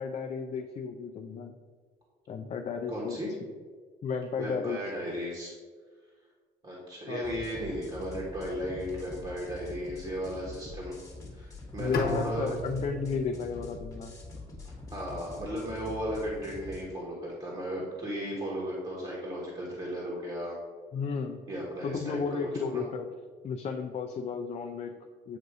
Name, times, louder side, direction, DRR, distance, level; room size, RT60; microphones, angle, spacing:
voice 1, 0.0-1.5 2.3-3.2 4.0-4.8 7.1-7.4 11.8-14.1 20.9-21.4 21.8-23.1 23.4-25.4, left 5 dB, 40° left, 4 dB, 0.5 m, -33 dB
voice 2, 2.9-3.3 4.4-5.5 6.6-11.0 11.3-12.5 14.6-20.5 21.5-22.8, equal, 30° right, -5 dB, 1.4 m, -35 dB
sound 1, 7.2-16.8, left 3 dB, 20° left, 1.3 m, -45 dB
Bowed string instrument, 11.9-15.0, left 2 dB, 60° left, 1.0 m, -37 dB
8.0 x 2.7 x 4.8 m, 1.5 s
cardioid pair, 110°, 17 cm